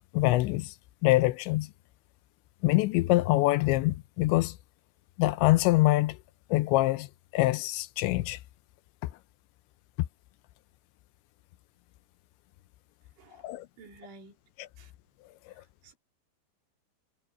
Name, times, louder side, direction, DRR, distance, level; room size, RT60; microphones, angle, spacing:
voice 1, 0.1-0.7 1.0-1.7 2.6-4.6 5.2-6.2 6.5-7.1 7.3-8.4 13.4-13.7 14.6-14.7, left 18 dB, 80° left, 2.8 m, -24 dB
voice 2, 13.8-14.4 14.8-14.9 15.8-15.9, right 3 dB, 75° right, 5.5 m, -51 dB
omnidirectional pair, 5.4 m